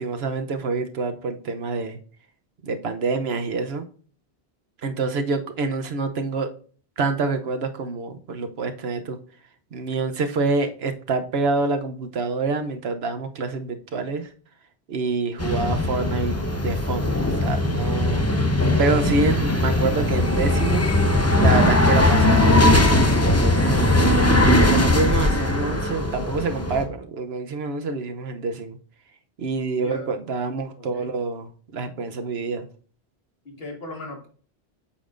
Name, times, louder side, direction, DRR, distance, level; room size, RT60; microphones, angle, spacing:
voice 1, 0.0-2.0 2.6-3.8 4.8-6.5 7.0-9.2 9.7-14.3 14.9-18.2 18.8-20.9 21.4-23.9 24.6-28.8 29.4-32.7, right 4 dB, 75° right, 8 dB, 1.0 m, -27 dB
sound 1, 15.4-26.8, left 1 dB, 15° left, 0.8 m, -19 dB
voice 2, 30.8-31.1 33.5-34.3, left 2 dB, 70° left, 1 dB, 2.0 m, -37 dB
8.5 x 7.1 x 2.5 m, 0.43 s
omnidirectional pair, 1.1 m